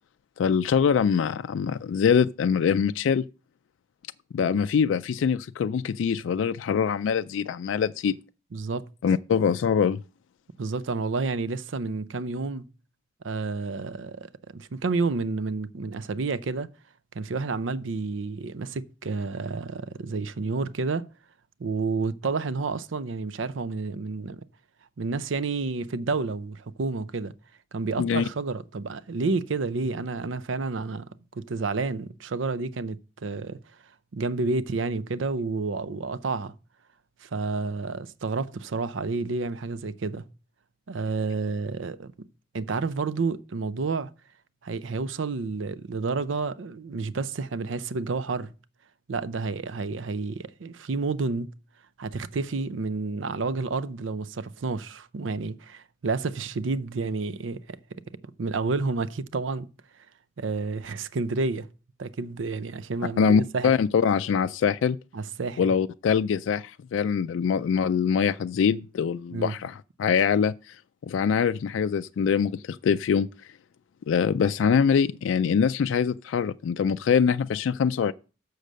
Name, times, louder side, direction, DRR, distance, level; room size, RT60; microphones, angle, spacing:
voice 1, 0.4-3.3 4.3-8.2 9.0-10.0 28.0-28.2 63.2-65.0 65.6-70.8 71.0-73.3 74.1-78.1, left 7 dB, 80° left, 0.3 m, -23 dB
voice 2, 8.5-8.9 10.6-12.6 13.2-16.7 17.1-21.1 21.6-24.4 25.0-27.3 27.7-33.6 34.1-36.5 37.2-40.3 40.9-42.3 42.5-44.1 44.6-48.5 49.1-51.5 52.0-58.0 58.4-59.7 60.4-61.7 62.0-63.7 65.1-65.7 69.3-69.5, right 4 dB, 85° right, 0.5 m, -30 dB
6.6 x 6.5 x 6.3 m
head